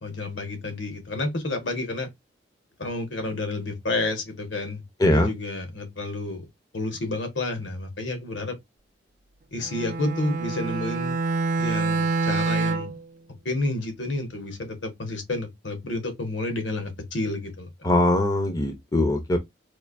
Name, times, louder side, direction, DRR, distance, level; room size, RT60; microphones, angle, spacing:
voice 1, 0.0-2.1 2.8-6.5 6.7-8.6 9.5-11.2 11.6-12.9 13.4-17.9, left 2 dB, 80° left, 1.2 m, -30 dB
voice 2, 5.0-5.3 17.8-19.4, left 1 dB, 20° left, 0.6 m, -21 dB
Bowed string instrument, 9.6-13.0, right 3 dB, 45° right, 0.4 m, -26 dB
4.3 x 2.6 x 2.5 m
head